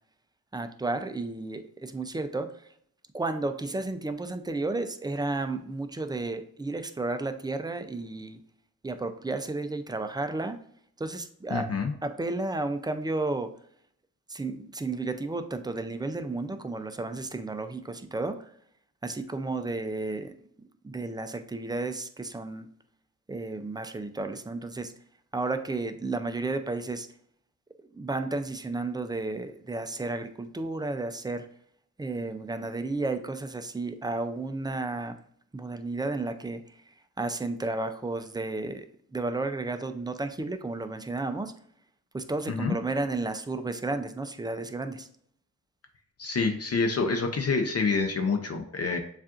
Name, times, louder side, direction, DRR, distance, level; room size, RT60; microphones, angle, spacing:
voice 1, 0.5-2.7 3.1-8.4 8.8-10.6 11.0-11.7 12.0-13.5 14.3-18.5 19.0-20.3 20.8-22.7 23.3-24.9 25.3-27.1 27.9-31.5 32.0-35.2 35.5-36.8 37.2-38.9 39.1-41.5 42.1-45.1, right 2 dB, 10° right, 8 dB, 0.4 m, -32 dB
voice 2, 11.5-11.9 42.5-42.7 46.2-49.0, left 4 dB, 45° left, 4 dB, 0.6 m, -27 dB
7.0 x 2.5 x 2.5 m, 0.64 s
cardioid pair, 80°, 35 cm